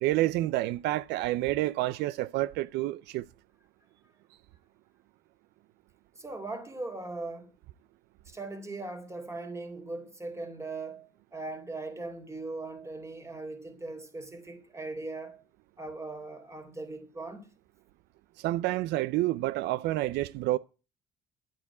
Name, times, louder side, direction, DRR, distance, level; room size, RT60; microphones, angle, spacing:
voice 1, 0.0-3.2 18.4-20.6, right 16 dB, 85° right, 0.6 m, -29 dB
voice 2, 6.2-7.5 8.3-15.4 15.8-17.5, right 2 dB, 15° right, 3.9 m, -39 dB
12.0 x 8.6 x 8.4 m
cardioid pair, 110°, 17 cm